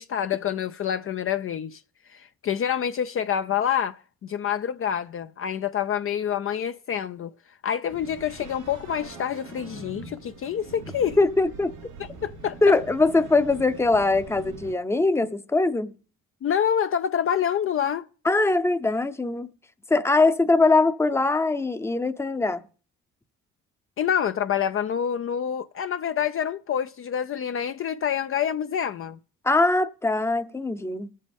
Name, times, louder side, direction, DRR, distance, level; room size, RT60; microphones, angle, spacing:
voice 1, 0.0-1.8 2.1-7.3 7.6-11.2 12.2-12.6 16.4-18.1 24.0-29.2, left 9 dB, 45° left, 0.5 m, -27 dB
sound 1, 7.9-14.7, right 3 dB, 85° right, 3.9 m, -43 dB
voice 2, 11.2-11.7 12.6-15.9 18.2-19.5 19.9-22.6 29.4-31.1, left 3 dB, 10° left, 0.7 m, -22 dB
22.5 x 7.6 x 3.5 m
cardioid pair, 90°, 30 cm